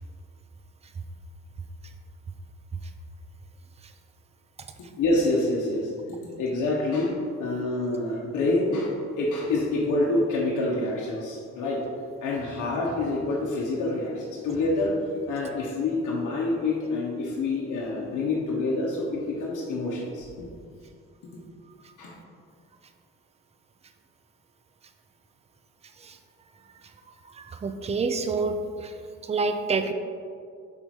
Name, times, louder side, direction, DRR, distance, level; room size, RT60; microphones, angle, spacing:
voice 1, 5.0-5.9 6.4-11.8 12.2-20.3 22.0-22.1, left 2 dB, 85° left, -4 dB, 1.0 m, -27 dB
voice 2, 27.4-28.9 29.3-29.9, right 4 dB, 20° right, 7 dB, 0.5 m, -27 dB
5.4 x 4.1 x 4.7 m, 2.2 s
cardioid pair, 90°, 30 cm